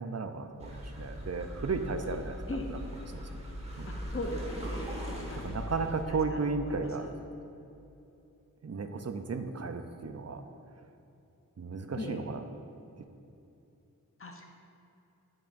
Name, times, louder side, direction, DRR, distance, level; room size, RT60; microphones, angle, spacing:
voice 1, 0.0-2.6 3.1-3.3 3.8-4.0 5.3-7.1 8.6-10.4 11.6-12.4, right 4 dB, 50° right, 7 dB, 0.5 m, -34 dB
sound 1, 0.6-6.0, equal, 20° right, 1.3 m, -39 dB
voice 2, 4.1-7.1 11.9-12.2 14.2-14.5, left 1 dB, 40° left, 3 dB, 0.7 m, -40 dB
10.5 x 5.9 x 2.6 m, 2.8 s
wide cardioid pair, 45°, 33 cm